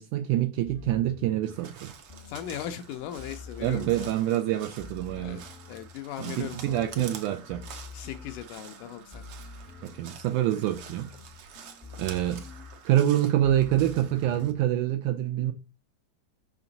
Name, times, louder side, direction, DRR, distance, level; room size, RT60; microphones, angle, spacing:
voice 1, 0.0-1.9 3.6-5.4 6.2-7.6 9.8-11.1 11.4-11.5 12.0-12.4 12.8-15.5, right 12 dB, 85° right, 1.8 m, -26 dB
sound 1, 0.6-1.7 2.1-6.1 6.4-10.4 10.7-14.7, left 4 dB, 20° left, 0.7 m, -47 dB
Crow, 1.4-14.5, right 7 dB, 65° right, 1.4 m, -48 dB
voice 2, 2.3-4.3 5.1-5.4 5.7-7.1 7.9-9.2, left 10 dB, 80° left, 1.9 m, -38 dB
5.8 x 5.7 x 3.9 m
omnidirectional pair, 4.0 m